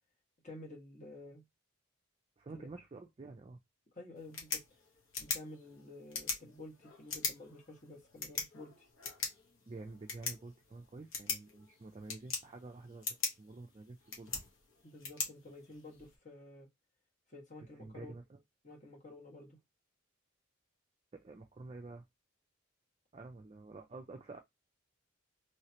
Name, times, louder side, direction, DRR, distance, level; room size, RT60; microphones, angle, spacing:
voice 1, 0.4-1.4 2.5-2.6 3.9-4.6 5.2-8.9 14.8-16.7 17.3-18.1 18.6-19.6, left 2 dB, 35° left, 1.6 m, -51 dB
voice 2, 2.4-3.6 9.7-14.3 17.8-18.4 21.1-22.1 23.1-24.4, right 3 dB, 30° right, 0.4 m, -49 dB
sound 1, 4.1-16.1, left 5 dB, 75° left, 1.2 m, -42 dB
3.2 x 3.0 x 2.9 m
head